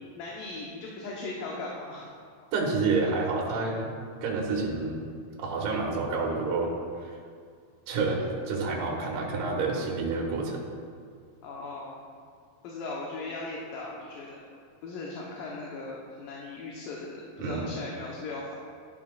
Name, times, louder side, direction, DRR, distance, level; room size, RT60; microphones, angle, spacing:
voice 1, 0.2-2.1 11.4-12.0 12.6-14.5 14.8-18.6, left 3 dB, 70° left, -3 dB, 2.5 m, -38 dB
voice 2, 2.5-3.9 4.2-5.0 5.4-6.7 7.9-10.6 17.4-17.8, right 3 dB, 65° right, -2 dB, 2.7 m, -28 dB
11.5 x 11.5 x 2.4 m, 2.2 s
omnidirectional pair, 4.3 m